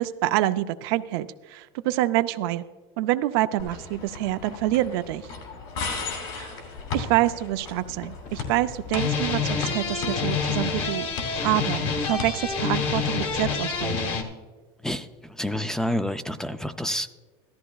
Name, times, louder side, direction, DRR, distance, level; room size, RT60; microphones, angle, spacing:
voice 1, 0.0-2.6 3.0-5.3 6.3-6.5 6.9-11.1 11.4-14.2, right 15 dB, 70° right, 11 dB, 0.5 m, -26 dB
sound 1, 3.6-14.1, left 4 dB, 70° left, 2.7 m, -37 dB
sound 2, 7.2-7.3 7.9-8.6 8.9-14.2, left 5 dB, 45° left, 1.3 m, -27 dB
voice 2, 14.8-17.1, left 1 dB, 5° left, 10 dB, 0.3 m, -29 dB
14.5 x 13.0 x 2.3 m, 1.4 s
supercardioid pair, 135°, 13 cm